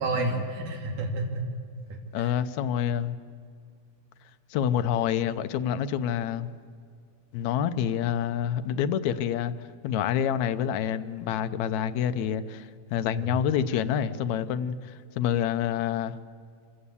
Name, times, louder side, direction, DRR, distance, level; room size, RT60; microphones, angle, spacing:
voice 1, 0.0-1.5 1.9-2.3 13.1-13.3, right 3 dB, 80° right, 1 dB, 3.7 m, -31 dB
voice 2, 2.1-3.2 4.5-6.5 7.3-9.5 9.8-16.2, left 9 dB, 75° left, 11 dB, 2.0 m, -27 dB
26.0 x 14.5 x 8.3 m, 2.2 s
omnidirectional pair, 3.5 m